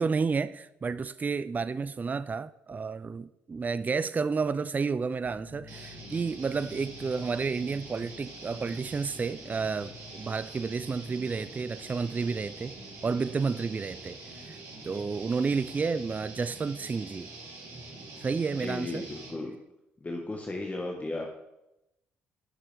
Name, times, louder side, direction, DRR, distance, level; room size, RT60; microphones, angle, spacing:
voice 1, 0.0-12.8 13.0-14.6 14.8-17.3 18.2-19.0, right 5 dB, 25° right, 0.4 m, -31 dB
sound 1, 5.2-16.7, left 6 dB, 75° left, 1.4 m, -55 dB
sound 2, 5.7-19.4, right 2 dB, 60° right, 2.6 m, -45 dB
voice 2, 18.5-19.6 20.0-21.3, left 2 dB, 25° left, 1.3 m, -35 dB
11.0 x 6.7 x 3.4 m
hypercardioid pair, 45°, 6 cm